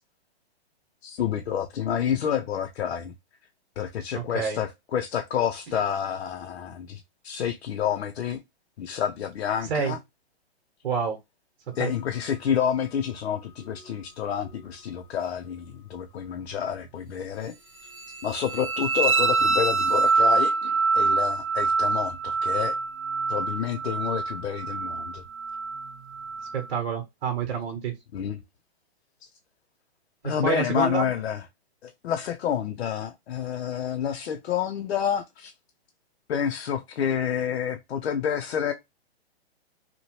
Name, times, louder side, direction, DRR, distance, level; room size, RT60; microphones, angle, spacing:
voice 1, 1.0-3.1 3.8-8.4 8.8-10.0 11.8-17.5 18.2-22.8 23.3-25.2 28.1-28.4 30.2-31.4 31.8-35.5 36.3-38.7, left 8 dB, 85° left, 0.5 m, -29 dB
voice 2, 4.1-4.6 9.7-9.9 10.8-11.2 11.8-11.9 26.5-27.9 30.2-31.1, right 6 dB, 65° right, 0.9 m, -28 dB
sound 1, 17.8-26.7, right 4 dB, 35° right, 0.8 m, -25 dB
2.8 x 2.1 x 3.0 m
hypercardioid pair, 150°, 32 cm